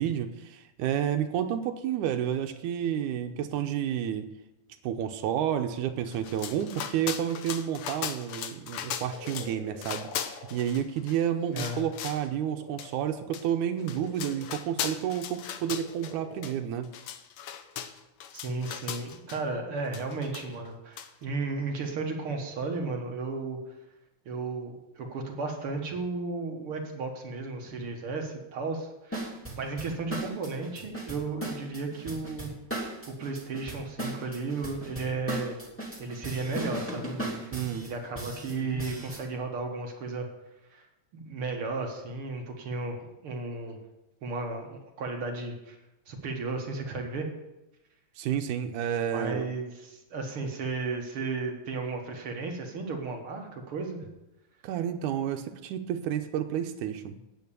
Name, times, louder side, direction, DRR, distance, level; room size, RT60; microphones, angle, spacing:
voice 1, 0.0-4.3 4.8-16.9 37.5-37.9 38.7-38.8 48.2-49.5 54.6-57.2, right 9 dB, 90° right, 6 dB, 2.1 m, -30 dB
sound 1, 6.1-9.5 9.8-11.2 11.6-12.3 12.8-12.9 13.3-13.4 13.8-16.1 16.4-16.5 16.8-19.4 19.9-20.7 21.0-21.1, left 9 dB, 80° left, 1.2 m, -38 dB
sound 2, 9.1-14.5 15.4-16.8, left 3 dB, 55° left, 1.1 m, -48 dB
voice 2, 11.5-11.9 18.3-23.6 24.3-29.3 29.6-32.5 33.1-35.6 36.0-40.3 40.7-40.9 41.1-43.8 44.2-45.8 46.1-47.3 49.1-54.1, right 3 dB, 55° right, 2 dB, 1.9 m, -34 dB
sound 3, 29.1-39.2, right 1 dB, 5° left, 2.3 m, -37 dB
9.3 x 8.7 x 6.8 m, 0.94 s
omnidirectional pair, 3.5 m